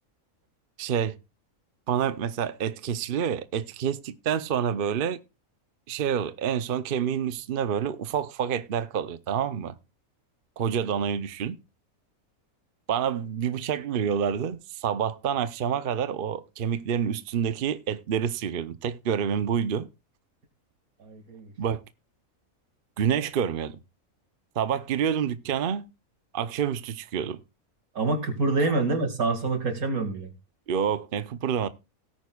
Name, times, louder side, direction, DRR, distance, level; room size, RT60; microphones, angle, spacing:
voice 1, 0.8-1.2 1.9-5.2 5.9-9.8 10.6-11.6 12.9-19.9 21.6-21.8 23.0-23.8 24.6-25.9 26.3-27.4 30.7-31.7, right 8 dB, 50° right, 0.7 m, -28 dB
voice 2, 21.0-21.5 27.9-30.3, right 3 dB, 85° right, 2.6 m, -26 dB
18.0 x 9.3 x 2.3 m
omnidirectional pair, 1.5 m